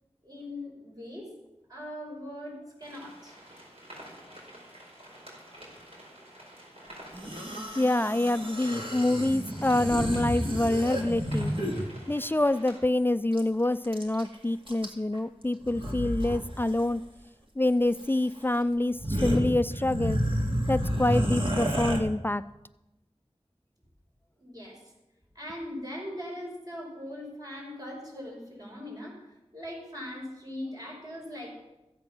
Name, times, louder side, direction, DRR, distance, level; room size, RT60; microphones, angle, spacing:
voice 1, 0.2-1.3 1.7-3.7 24.4-24.8 25.3-29.2 29.5-31.5, left 1 dB, 35° right, -2 dB, 5.7 m, -40 dB
sound 1, 2.8-12.8, equal, 65° right, 4.8 m, -49 dB
sound 2, 7.1-11.9 13.3-13.4 13.6-14.3 14.7-15.2 15.6-16.4 16.7-16.9 18.0-18.1 18.5-18.6 18.9-22.0, equal, 50° right, 2.1 m, -30 dB
voice 2, 7.8-11.5 12.1-17.0 17.6-20.2 20.7-22.5, left 1 dB, 20° left, 14 dB, 0.4 m, -26 dB
14.5 x 8.7 x 6.1 m, 0.97 s
wide cardioid pair, 50°, 11 cm